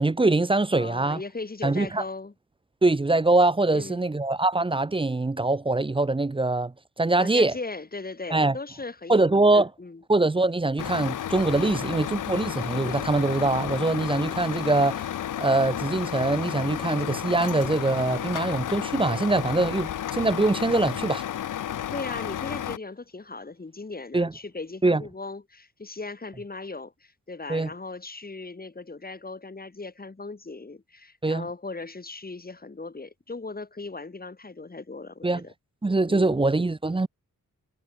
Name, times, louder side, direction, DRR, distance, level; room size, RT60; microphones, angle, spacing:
voice 1, 0.0-1.2 1.6-2.0 2.8-6.7 7.0-7.5 8.3-8.5 9.1-9.7 10.1-15.1 15.4-21.2 24.1-24.3 24.8-25.0 27.5-27.7 31.2-31.5 35.2-35.4 35.8-37.1, right 2 dB, 15° right, 0.6 m, -23 dB
voice 2, 0.8-2.3 3.7-4.1 7.2-10.0 21.9-35.5 36.1-36.4, left 3 dB, 30° left, 4.0 m, -38 dB
Truck, 10.8-22.8, left 11 dB, 70° left, 0.6 m, -32 dB
wide cardioid pair, 125°, 32 cm